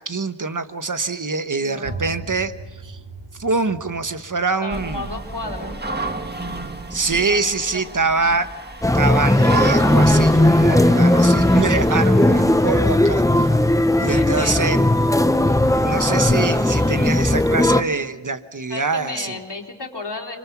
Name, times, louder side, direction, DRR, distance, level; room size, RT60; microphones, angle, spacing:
voice 1, 0.0-2.5 2.8-3.0 3.4-5.1 6.9-8.5 8.9-13.5 14.0-14.9 15.8-19.3, right 4 dB, 45° right, 10 dB, 1.2 m, -24 dB
voice 2, 1.6-2.3 4.6-5.8 7.2-8.1 14.0-14.9 18.7-20.4, left 3 dB, 70° left, 1 dB, 3.5 m, -34 dB
sound 1, 1.8-7.4, right 3 dB, 75° right, 1.6 m, -39 dB
sound 2, 4.7-17.4, right 2 dB, 25° right, 1.7 m, -33 dB
sound 3, 8.8-17.8, left 1 dB, 10° left, 0.8 m, -17 dB
26.0 x 24.5 x 6.0 m, 1.2 s
wide cardioid pair, 40°, 42 cm